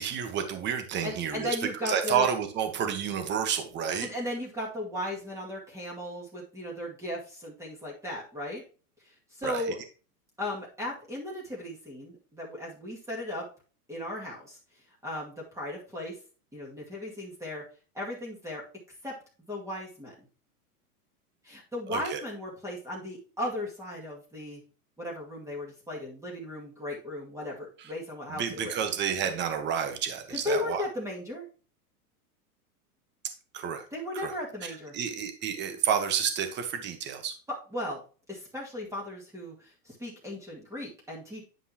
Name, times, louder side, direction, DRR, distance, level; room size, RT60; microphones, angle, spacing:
voice 1, 0.0-1.5 1.9-4.1 9.4-9.6 21.9-22.2 28.3-30.8 33.5-33.8 34.2-34.3 34.9-37.3, right 8 dB, 25° right, 7 dB, 1.2 m, -30 dB
voice 2, 1.0-2.3 4.0-8.6 9.3-9.8 10.4-13.5 13.9-14.6 15.0-16.1 16.5-17.6 17.9-18.6 19.0-19.1 19.5-20.1 21.4-24.6 25.0-28.8 30.3-31.5 33.9-35.0 37.5-38.0 38.3-41.4, left 1 dB, 5° right, -3 dB, 2.2 m, -36 dB
9.7 x 5.4 x 2.9 m, 0.36 s
hypercardioid pair, 130°, 45 cm